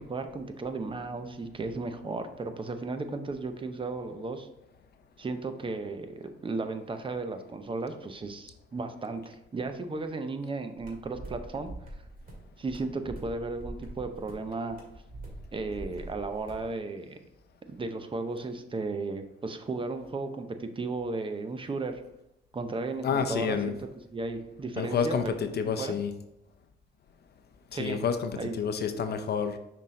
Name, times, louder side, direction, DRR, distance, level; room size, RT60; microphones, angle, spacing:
voice 1, 0.0-4.5 5.2-11.7 12.6-14.8 15.5-17.2 17.7-22.0 22.5-23.8 24.1-25.3 25.8-26.0 27.7-28.0 28.4-28.5, right 3 dB, 25° right, 8 dB, 0.6 m, -35 dB
sound 1, 10.8-16.7, right 1 dB, 45° right, 2.0 m, -44 dB
voice 2, 23.0-23.7 24.8-26.1 27.7-29.6, left 6 dB, 55° left, 8 dB, 0.6 m, -29 dB
6.0 x 4.2 x 3.7 m, 0.89 s
cardioid pair, 90°, 20 cm